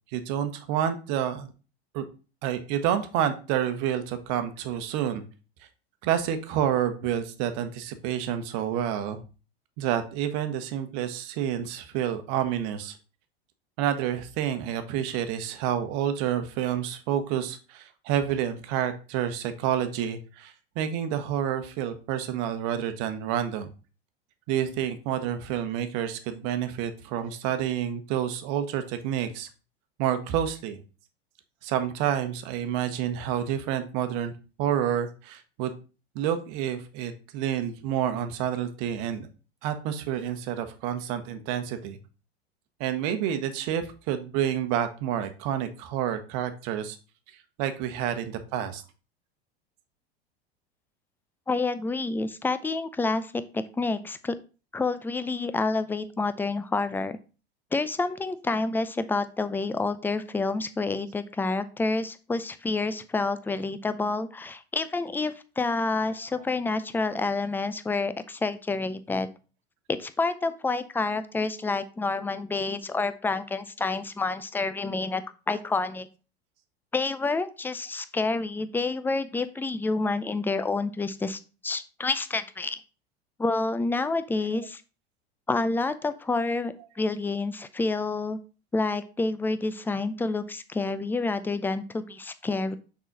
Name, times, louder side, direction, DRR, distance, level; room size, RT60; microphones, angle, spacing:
voice 1, 0.1-1.5 1.9-2.0 2.4-5.2 6.0-9.2 9.8-13.0 13.8-23.7 24.5-29.5 30.0-30.8 31.6-35.7 36.1-39.3 39.6-42.0 42.8-47.0 47.6-48.8 66.3-66.4, right 10 dB, 55° right, 9 dB, 1.1 m, -29 dB
voice 2, 51.5-54.4 54.7-57.2 57.7-69.3 69.9-76.1 76.9-82.8 83.4-84.8 85.5-88.4 88.7-92.8, left 3 dB, 5° left, 12 dB, 0.5 m, -28 dB
6.1 x 4.1 x 3.9 m, 0.34 s
hypercardioid pair, 85°, 31 cm